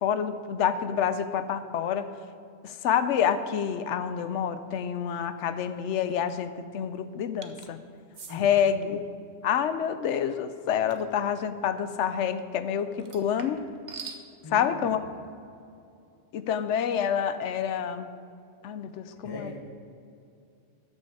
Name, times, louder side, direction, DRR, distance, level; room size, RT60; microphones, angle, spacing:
voice 1, 0.0-2.1 2.6-7.8 8.3-9.0 9.4-13.7 14.5-15.0 16.3-18.1 18.6-19.5, left 8 dB, 85° left, 11 dB, 0.9 m, -28 dB
sound 1, 7.4-7.7 8.1-8.4 10.9-11.1 13.0-14.2, right 5 dB, 45° right, 0.8 m, -43 dB
voice 2, 14.4-15.1 19.2-19.6, left 1 dB, 20° left, -2 dB, 1.2 m, -40 dB
13.0 x 6.3 x 4.9 m, 2.5 s
omnidirectional pair, 1.2 m